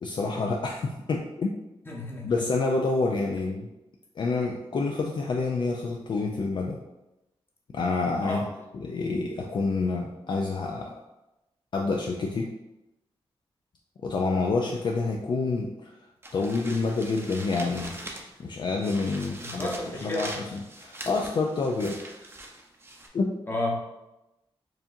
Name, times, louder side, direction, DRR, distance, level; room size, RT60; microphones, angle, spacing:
voice 1, 0.0-1.5 2.2-3.7 4.2-6.8 7.7-8.5 8.7-10.9 11.7-12.5 14.0-15.9 16.3-18.0 18.4-19.7 20.0-22.0 23.1-23.4, left 3 dB, 50° left, 1 dB, 0.4 m, -28 dB
voice 2, 1.9-2.4 8.2-8.5 19.4-20.5 23.5-23.8, left 1 dB, 20° left, -3 dB, 1.0 m, -32 dB
sound 1, 16.2-18.4 18.8-23.1, right 1 dB, 25° right, 0.6 m, -42 dB
4.6 x 2.9 x 2.6 m, 0.94 s
cardioid pair, 95°, 10 cm